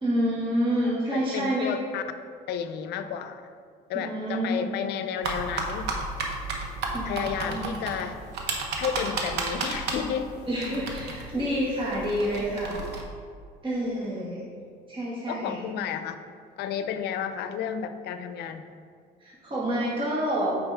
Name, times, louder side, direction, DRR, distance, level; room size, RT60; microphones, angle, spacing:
voice 1, 0.0-1.8 3.9-4.8 6.9-7.8 10.5-12.8 13.6-14.4 14.9-15.7 19.2-20.6, equal, 30° right, -6 dB, 1.7 m, -28 dB
voice 2, 1.1-2.0 2.5-3.5 3.9-5.9 7.0-8.2 8.8-10.3 15.3-16.2 16.6-18.6, left 8 dB, 75° left, 10 dB, 0.5 m, -32 dB
sound 1, 5.2-13.0, right 3 dB, 80° right, 1.1 m, -33 dB
8.8 x 5.0 x 3.5 m, 2.2 s
cardioid pair, 110°, 17 cm